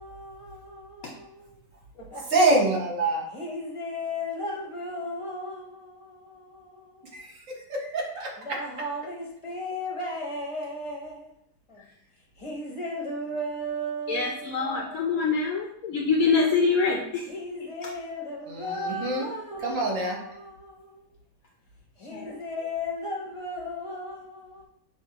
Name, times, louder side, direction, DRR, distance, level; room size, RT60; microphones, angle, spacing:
voice 1, 0.0-1.6 1.9-2.2 3.3-7.2 8.4-11.3 11.7-11.9 12.4-15.4 17.3-21.1 22.0-24.7, left 1 dB, 25° left, -3 dB, 0.7 m, -36 dB
voice 2, 2.3-3.2 7.1-8.6 18.5-19.3 19.6-20.2, right 2 dB, 55° right, -1 dB, 1.3 m, -26 dB
voice 3, 14.1-17.2 22.1-22.3, left 4 dB, 70° left, 0 dB, 0.9 m, -25 dB
6.0 x 2.5 x 2.9 m, 0.74 s
omnidirectional pair, 1.8 m